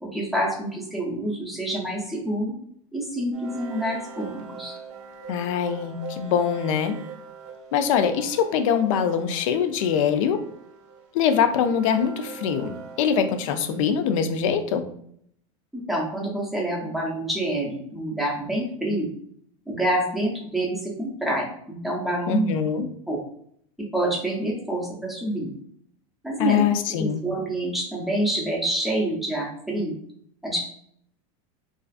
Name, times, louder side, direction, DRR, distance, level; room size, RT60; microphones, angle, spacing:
voice 1, 0.0-2.5 2.9-4.7 15.7-19.1 19.7-22.5 23.1-23.2 23.8-25.5 26.2-26.6 27.0-29.9 30.4-30.6, right 1 dB, ahead, -3 dB, 0.5 m, -27 dB
sound 1, 3.3-13.8, right 5 dB, 60° right, 0.6 m, -42 dB
voice 2, 5.3-7.0 7.7-10.4 11.1-14.8 22.3-22.9 26.4-27.2, left 7 dB, 70° left, 9 dB, 0.4 m, -23 dB
2.4 x 2.3 x 2.3 m, 0.67 s
supercardioid pair, 145°, 18 cm